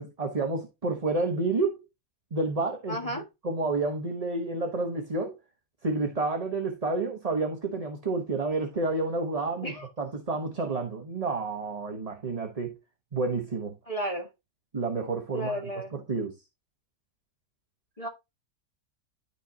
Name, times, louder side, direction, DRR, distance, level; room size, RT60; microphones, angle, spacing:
voice 1, 0.0-1.8 2.3-5.3 5.8-12.7 13.1-13.7 14.7-16.3, right 3 dB, 25° right, 1.0 m, -30 dB
voice 2, 2.9-3.2 9.6-9.9 13.9-14.3 15.3-15.9 18.0-18.1, equal, 20° left, 1.6 m, -33 dB
12.5 x 4.7 x 2.8 m
omnidirectional pair, 1.8 m